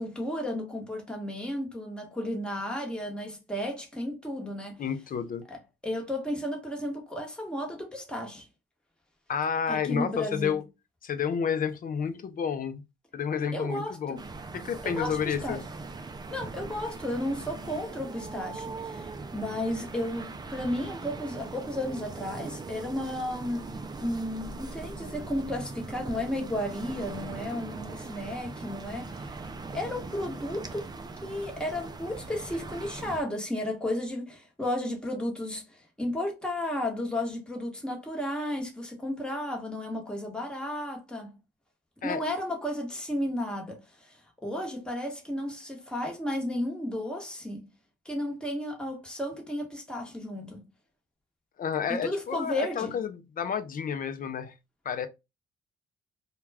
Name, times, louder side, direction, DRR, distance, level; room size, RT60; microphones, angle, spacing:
voice 1, 0.0-4.8 5.8-8.4 9.7-10.6 13.5-14.2 14.8-15.6 16.3-23.7 24.0-29.4 29.7-30.9 31.2-41.4 42.0-47.7 48.0-50.7 51.9-53.0, left 1 dB, 5° left, 1.0 m, -33 dB
voice 2, 4.8-5.5 9.3-10.6 11.0-12.8 13.1-14.2 14.5-15.6 42.0-42.2 51.6-54.6 54.8-55.1, left 7 dB, 45° left, 0.5 m, -30 dB
sound 1, 14.2-33.2, right 3 dB, 20° right, 0.4 m, -40 dB
2.3 x 2.2 x 3.2 m
cardioid pair, 90°, 20 cm